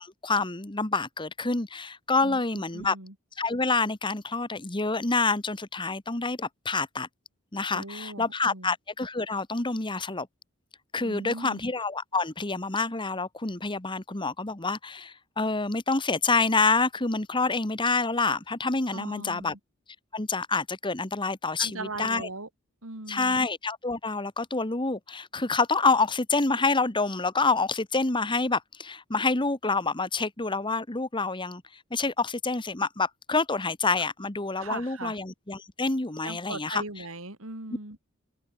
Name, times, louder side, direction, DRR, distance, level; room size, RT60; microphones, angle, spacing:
voice 1, 0.0-3.0 3.4-7.1 7.5-10.3 10.9-19.5 20.1-22.3 23.1-36.8, left 3 dB, 20° left, 1.4 m, -27 dB
voice 2, 2.2-3.1 7.7-8.7 11.0-11.6 18.9-19.6 21.6-22.5 22.8-23.4 34.0-34.1 34.5-35.2 36.2-38.0, right 2 dB, 65° right, 4.5 m, -39 dB
head